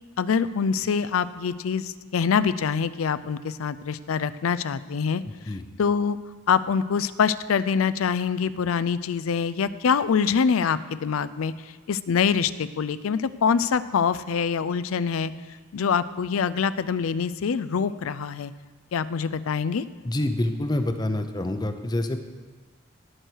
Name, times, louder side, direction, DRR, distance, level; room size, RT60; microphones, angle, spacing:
voice 1, 0.2-5.2 5.8-6.2 6.5-11.5 11.9-15.3 15.7-18.5 18.9-19.8, left 6 dB, 85° left, 15 dB, 0.4 m, -25 dB
voice 2, 5.3-5.6 20.0-22.2, left 1 dB, 20° left, 8 dB, 0.7 m, -27 dB
17.5 x 6.4 x 4.6 m, 1.3 s
head